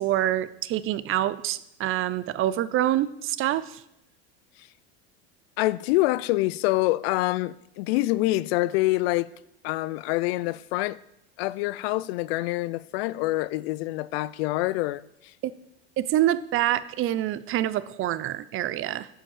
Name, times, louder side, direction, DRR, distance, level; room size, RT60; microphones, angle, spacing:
voice 1, 0.0-3.8 16.0-19.1, right 13 dB, 40° right, 0.6 m, -26 dB
voice 2, 5.6-9.3 9.6-11.0 11.4-15.0, left 18 dB, 70° left, 0.5 m, -26 dB
8.6 x 5.7 x 7.2 m
hypercardioid pair, 100°, 32 cm